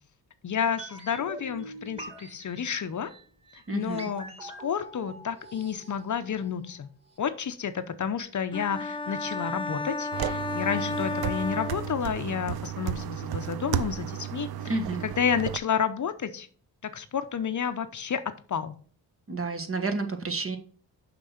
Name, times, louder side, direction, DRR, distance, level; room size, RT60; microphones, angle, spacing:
voice 1, 0.4-3.1 3.7-6.9 7.2-14.5 15.0-16.5 16.8-18.7, left 7 dB, 45° left, 11 dB, 0.7 m, -30 dB
sound 1, 0.8-6.8 7.1-7.2, right 1 dB, 15° right, 2.6 m, -44 dB
voice 2, 3.7-4.1 14.6-15.0 19.3-20.6, right 3 dB, 35° right, 7 dB, 1.4 m, -30 dB
sound 2, 8.5-12.4, left 3 dB, 10° left, 0.7 m, -33 dB
sound 3, 10.1-15.6, right 11 dB, 65° right, 0.6 m, -33 dB
6.4 x 6.0 x 5.8 m, 0.44 s
cardioid pair, 85°, 41 cm